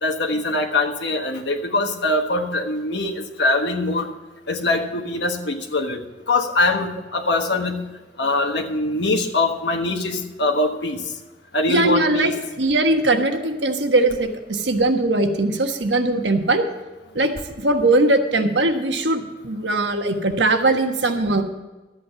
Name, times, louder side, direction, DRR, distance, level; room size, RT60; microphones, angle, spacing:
voice 1, 0.0-4.1 4.5-6.0 6.3-7.8 8.2-11.0 11.5-12.3, left 2 dB, 65° left, 4 dB, 1.3 m, -22 dB
voice 2, 11.7-16.6 17.1-17.3 17.6-21.4, right 2 dB, 70° right, 6 dB, 1.4 m, -20 dB
13.0 x 8.6 x 5.8 m, 1.2 s
head